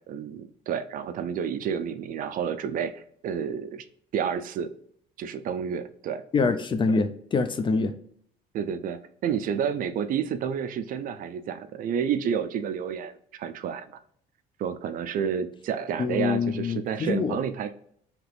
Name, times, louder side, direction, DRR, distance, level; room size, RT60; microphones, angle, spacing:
voice 1, 0.1-3.8 4.1-4.7 5.2-6.2 8.5-13.9 14.6-17.7, right 8 dB, 55° right, 11 dB, 0.4 m, -30 dB
voice 2, 6.3-7.9 16.0-17.4, left 4 dB, 30° left, 10 dB, 0.4 m, -25 dB
3.3 x 2.9 x 2.4 m, 0.64 s
cardioid pair, 110°, 17 cm